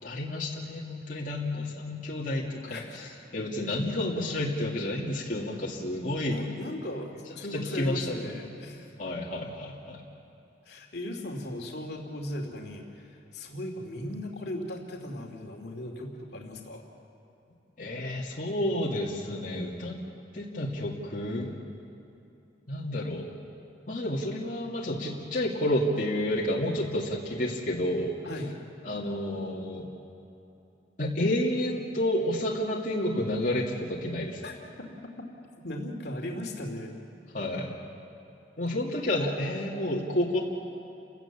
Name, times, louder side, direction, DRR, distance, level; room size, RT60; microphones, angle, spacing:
voice 1, 0.0-6.4 7.5-8.1 9.0-10.0 17.8-20.0 20.3-21.5 22.7-23.3 23.9-28.1 28.8-29.9 31.0-34.4 37.3-37.8 38.6-40.4, left 1 dB, 45° left, -4 dB, 2.5 m, -30 dB
voice 2, 2.7-3.0 6.2-8.9 10.6-16.8 28.2-28.5 34.4-34.9 35.6-36.9, left 1 dB, 65° left, 2 dB, 2.6 m, -37 dB
30.0 x 17.0 x 7.4 m, 2.8 s
head